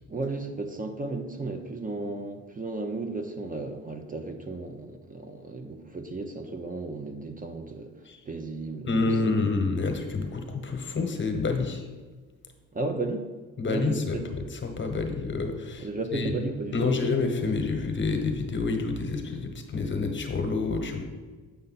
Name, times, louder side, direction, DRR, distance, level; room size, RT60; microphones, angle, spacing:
voice 1, 0.1-8.9 9.2-9.4 12.7-13.3 13.7-14.3 15.8-17.0, right 3 dB, 25° right, 5 dB, 0.7 m, -34 dB
voice 2, 8.9-11.8 13.6-16.3 16.7-21.1, left 3 dB, 40° left, 5 dB, 1.1 m, -28 dB
7.9 x 5.4 x 4.2 m, 1.4 s
cardioid pair, 90°, 30 cm